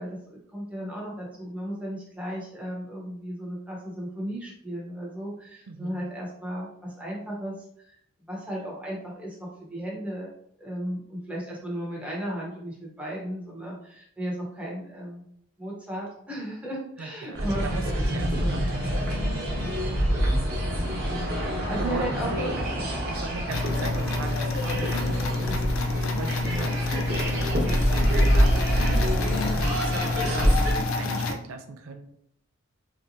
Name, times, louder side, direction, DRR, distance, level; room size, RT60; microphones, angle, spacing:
voice 1, 0.0-10.3 10.6-15.2 15.6-17.7 18.0-18.1 18.4-18.6 20.5-21.4 21.7-22.5 22.8-22.9, equal, 5° right, -4 dB, 0.8 m, -35 dB
voice 2, 5.7-6.0 17.0-19.5 20.7-20.9 21.5-22.5 23.1-32.0, right 3 dB, 85° right, 7 dB, 0.4 m, -38 dB
sound 1, 17.3-30.7, equal, 50° right, 1.0 m, -26 dB
sound 2, 23.5-31.3, left 3 dB, 85° left, 0.5 m, -28 dB
3.3 x 2.9 x 2.6 m, 0.70 s
head